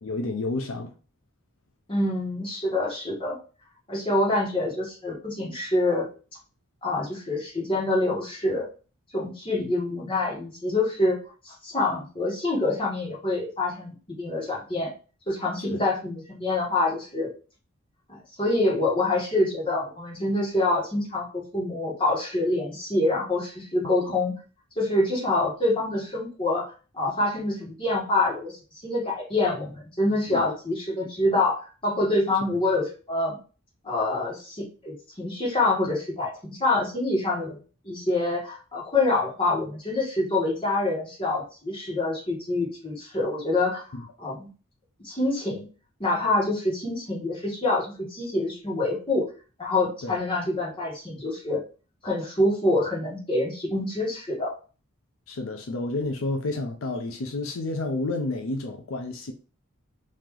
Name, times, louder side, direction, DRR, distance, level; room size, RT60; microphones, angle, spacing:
voice 1, 0.0-0.9 15.6-15.8 30.3-30.5 43.9-44.0 50.0-50.2 55.3-59.3, left 2 dB, 75° left, 0.5 m, -30 dB
voice 2, 1.9-3.4 3.9-6.0 6.8-8.7 9.1-11.2 11.4-14.9 15.3-17.3 18.1-24.3 24.8-26.6 26.9-28.6 28.8-33.4 33.8-37.6 37.8-43.8 44.2-44.5 45.0-45.7 46.0-49.2 49.6-51.6 52.0-54.5, left 2 dB, 25° left, 1.5 m, -26 dB
3.1 x 2.9 x 3.6 m
head